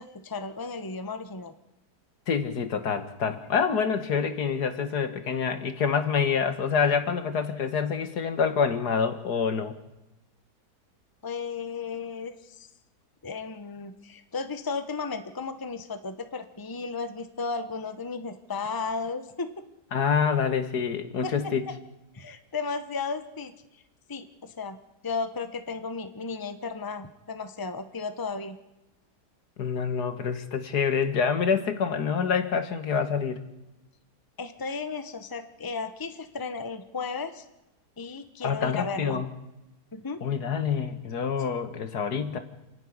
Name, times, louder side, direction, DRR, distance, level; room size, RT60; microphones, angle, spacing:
voice 1, 0.0-1.5 11.2-12.7 13.2-19.5 21.2-21.3 22.1-23.5 24.1-24.8 25.0-28.6 34.4-37.4 38.0-39.2 39.9-40.2, left 4 dB, 15° left, 10 dB, 1.0 m, -34 dB
voice 2, 2.3-9.7 19.9-21.6 29.6-33.4 38.4-39.3 40.2-42.4, left 6 dB, 70° left, 9 dB, 2.0 m, -26 dB
28.0 x 11.0 x 9.7 m, 0.96 s
omnidirectional pair, 1.8 m